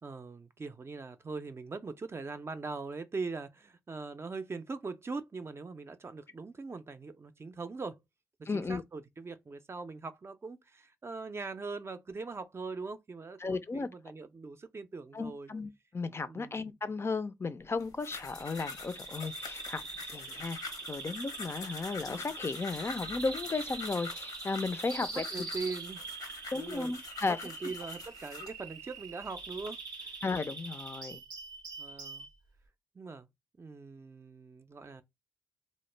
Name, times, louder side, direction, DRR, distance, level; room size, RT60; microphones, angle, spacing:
voice 1, 0.0-8.0 8.5-15.5 16.3-16.8 25.1-26.1 26.5-26.9 27.4-30.1 31.8-32.3 32.9-33.3 33.6-35.0, right 4 dB, 40° right, 0.4 m, -41 dB
voice 2, 8.5-8.8 13.4-13.9 15.1-19.8 20.1-25.2 26.5-27.4 30.2-31.2, left 4 dB, 40° left, 0.4 m, -35 dB
sound 1, 17.8-28.6 29.2-29.7, left 4 dB, 80° left, 0.7 m, -46 dB
Bird vocalization bird call bird song, 18.3-32.3, right 3 dB, 90° right, 0.6 m, -43 dB
2.1 x 2.0 x 3.1 m
supercardioid pair, 40°, 7 cm